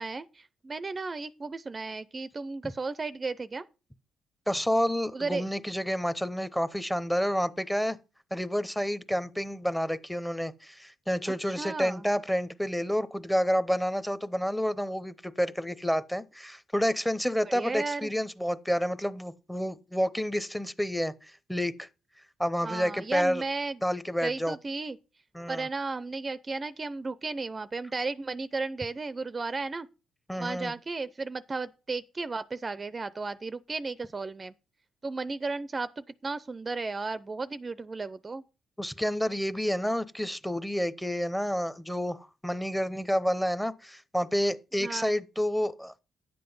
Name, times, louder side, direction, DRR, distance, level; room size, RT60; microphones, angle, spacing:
voice 1, 0.0-3.7 5.1-5.5 11.3-12.1 17.5-18.1 22.6-23.8 24.2-25.0 25.5-29.9 30.4-34.5 35.0-38.4 44.8-45.1, right 3 dB, 30° right, 0.5 m, -34 dB
voice 2, 4.5-8.0 8.3-21.9 22.4-23.4 23.8-24.5 25.3-25.7 30.3-30.7 38.8-46.0, equal, 5° left, 0.7 m, -29 dB
10.5 x 7.7 x 5.4 m
cardioid pair, 90°, 0 cm